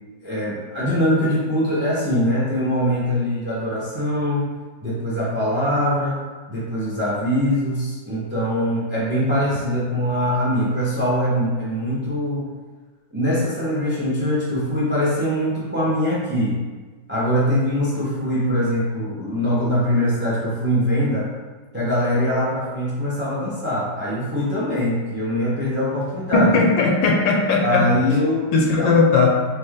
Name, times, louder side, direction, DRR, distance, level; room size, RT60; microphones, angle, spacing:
voice 1, 0.2-4.5 4.8-6.2 6.5-12.5 13.1-16.6 17.1-21.3 21.7-26.7 27.6-28.5 28.8-28.9, equal, 15° right, -7 dB, 0.4 m, -22 dB
voice 2, 26.3-27.8 28.5-29.5, left 3 dB, 75° left, 0 dB, 1.2 m, -17 dB
4.3 x 3.2 x 3.6 m, 1.4 s
omnidirectional pair, 2.2 m